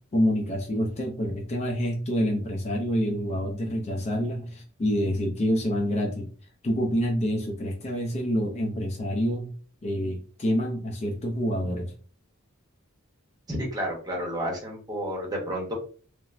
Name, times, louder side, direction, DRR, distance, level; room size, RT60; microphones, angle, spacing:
voice 1, 0.1-6.3 6.6-9.5 9.8-11.9, equal, 30° left, 1 dB, 0.4 m, -27 dB
voice 2, 13.5-15.7, equal, 20° right, -2 dB, 0.8 m, -31 dB
3.1 x 2.1 x 2.4 m, 0.42 s
head